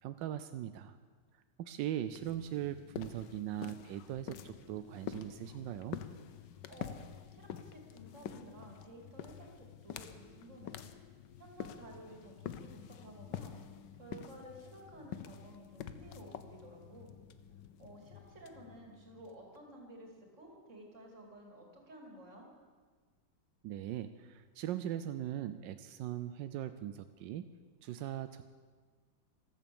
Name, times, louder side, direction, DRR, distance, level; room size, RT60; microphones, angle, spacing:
voice 1, 0.0-1.0 1.6-6.0 23.6-27.5 27.8-28.4, right 11 dB, 85° right, 11 dB, 1.3 m, -40 dB
sound 1, 2.0-19.6, left 9 dB, 80° left, 1.4 m, -48 dB
voice 2, 6.4-7.0 7.3-10.8 11.4-17.1 17.8-22.5, right 1 dB, 40° right, 1 dB, 3.2 m, -53 dB
14.5 x 13.0 x 7.1 m, 1.5 s
omnidirectional pair, 1.9 m